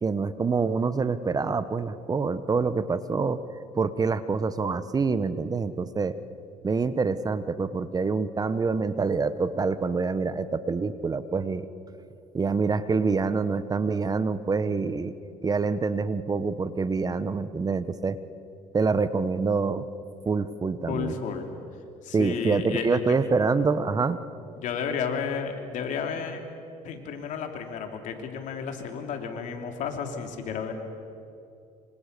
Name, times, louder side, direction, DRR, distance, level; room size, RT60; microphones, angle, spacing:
voice 1, 0.0-3.4 3.7-6.2 6.6-11.7 12.3-15.1 15.4-18.2 18.7-19.9 20.3-21.2 22.1-24.2, right 4 dB, 25° right, 14 dB, 1.0 m, -26 dB
voice 2, 20.9-21.5 22.0-23.2 24.6-26.4 26.8-30.7, left 6 dB, 65° left, 4 dB, 3.3 m, -32 dB
25.5 x 25.5 x 6.9 m, 2.6 s
cardioid pair, 95°, 14 cm